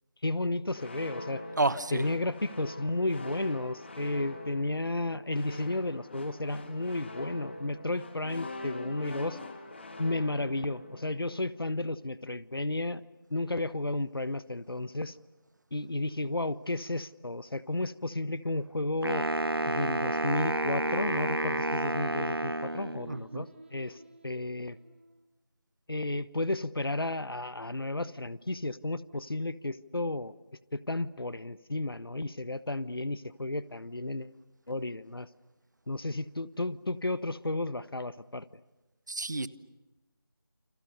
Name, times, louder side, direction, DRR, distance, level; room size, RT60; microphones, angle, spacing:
voice 1, 0.2-1.4 1.9-9.4 10.0-13.0 13.3-15.2 15.7-19.3 19.7-24.8 25.9-30.3 30.7-34.3 34.7-35.3 35.9-38.5, left 2 dB, 75° left, 16 dB, 1.2 m, -33 dB
sound 1, 0.7-11.6, left 2 dB, 30° left, 2.4 m, -43 dB
voice 2, 1.6-2.0 23.1-23.4 39.1-39.5, right 2 dB, 50° right, 15 dB, 1.2 m, -30 dB
Wind instrument woodwind instrument, 19.0-23.3, right 1 dB, 90° right, 1.2 m, -30 dB
Singing, 20.0-25.2, right 2 dB, 35° right, 5.0 m, -53 dB
29.0 x 27.5 x 6.9 m, 1.1 s
figure-of-eight pair, 170°, 12 cm